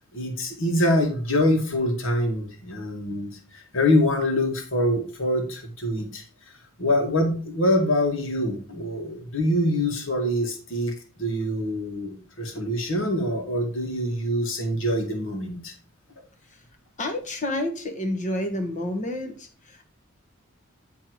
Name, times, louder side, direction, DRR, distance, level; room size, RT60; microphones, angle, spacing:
voice 1, 0.1-6.2 6.8-10.9 11.2-15.7, left 1 dB, 65° left, 2 dB, 1.8 m, -25 dB
voice 2, 17.0-19.8, left 1 dB, 35° left, 5 dB, 1.3 m, -30 dB
9.7 x 3.4 x 4.6 m, 0.39 s
head